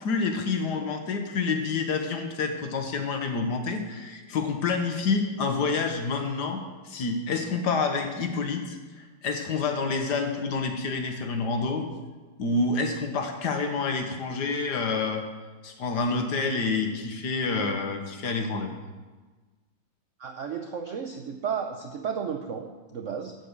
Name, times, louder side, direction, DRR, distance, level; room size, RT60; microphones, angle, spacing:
voice 1, 0.0-11.9 12.4-15.2 15.6-18.7, left 4 dB, 60° left, 5 dB, 1.6 m, -28 dB
voice 2, 20.2-23.3, right 7 dB, 80° right, 5 dB, 0.6 m, -33 dB
12.5 x 5.3 x 8.1 m, 1.3 s
omnidirectional pair, 2.2 m